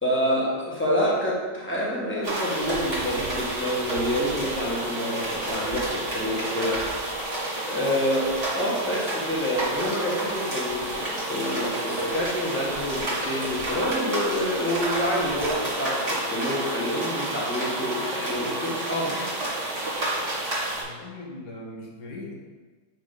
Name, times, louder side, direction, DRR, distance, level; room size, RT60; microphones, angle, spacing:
voice 1, 0.0-6.8 7.7-19.3, equal, 5° left, -6 dB, 1.4 m, -27 dB
sound 1, 2.2-20.8, right 1 dB, 30° right, 1.9 m, -30 dB
voice 2, 20.8-22.3, left 2 dB, 75° left, -2 dB, 1.9 m, -39 dB
7.4 x 4.9 x 3.9 m, 1.4 s
omnidirectional pair, 1.9 m